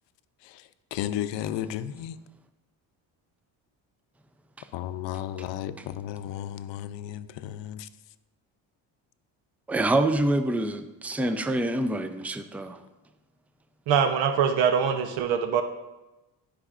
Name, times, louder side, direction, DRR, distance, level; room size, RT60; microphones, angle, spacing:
voice 1, 0.9-2.1 4.7-7.8, left 11 dB, 70° left, 13 dB, 0.6 m, -33 dB
voice 2, 9.7-12.8, right 1 dB, 5° right, 8 dB, 0.5 m, -26 dB
voice 3, 13.9-15.6, right 7 dB, 80° right, 7 dB, 0.8 m, -23 dB
13.0 x 5.1 x 2.5 m, 1.0 s
supercardioid pair, 80°, 45 cm